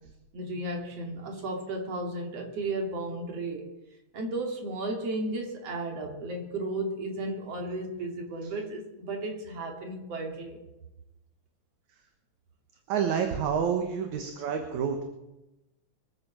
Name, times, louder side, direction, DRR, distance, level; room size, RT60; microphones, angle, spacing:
voice 1, 0.3-3.7 4.1-10.6, right 2 dB, 55° right, 2 dB, 3.7 m, -34 dB
voice 2, 12.9-15.0, right 7 dB, 70° right, 5 dB, 2.6 m, -28 dB
24.0 x 8.2 x 7.4 m, 0.96 s
omnidirectional pair, 3.5 m